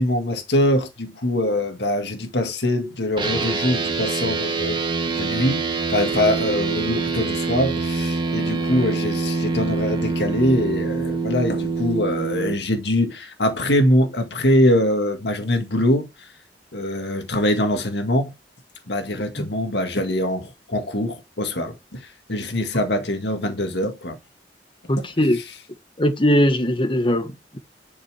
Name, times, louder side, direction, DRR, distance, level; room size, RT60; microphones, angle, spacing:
voice 1, 0.0-16.3 16.7-18.3 18.9-24.2 25.0-25.1, left 1 dB, 75° left, 1.9 m, -23 dB
sound 1, 3.2-12.5, right 4 dB, 25° right, 1.8 m, -25 dB
voice 2, 24.9-25.4 26.0-27.6, equal, 30° left, 1.4 m, -20 dB
11.0 x 5.9 x 4.9 m
head